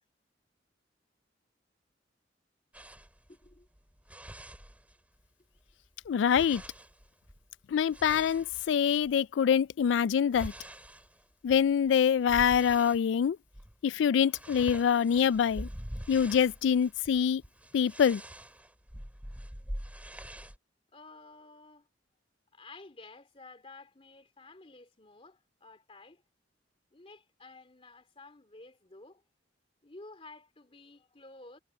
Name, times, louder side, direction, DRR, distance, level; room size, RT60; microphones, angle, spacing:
sound 1, 2.7-5.3 5.6-9.2 9.7-13.1 13.5-13.8 14.0-20.6, equal, 10° right, 2.2 m, -45 dB
voice 1, 3.3-3.7 20.9-21.9 22.5-26.2 26.9-29.2 29.8-31.6, left 3 dB, 30° left, 2.5 m, -52 dB
voice 2, 6.1-6.6 7.7-10.5 11.4-13.4 13.8-15.7 16.1-17.4 17.7-18.2, left 7 dB, 80° left, 0.3 m, -25 dB
head